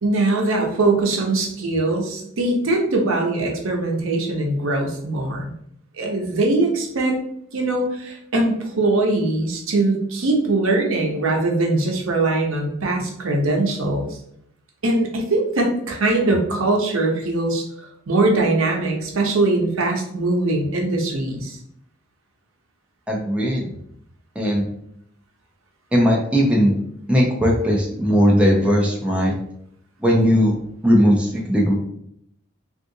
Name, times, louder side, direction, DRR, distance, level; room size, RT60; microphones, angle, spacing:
voice 1, 0.0-5.4 6.0-7.1 7.5-14.2 14.8-21.6, right 2 dB, 85° right, 1 dB, 0.7 m, -21 dB
voice 2, 23.1-23.7 24.4-24.7 25.9-26.7 27.1-29.3 30.0-30.6 30.8-31.8, equal, 5° right, -2 dB, 0.4 m, -18 dB
3.6 x 2.4 x 2.7 m, 0.71 s
head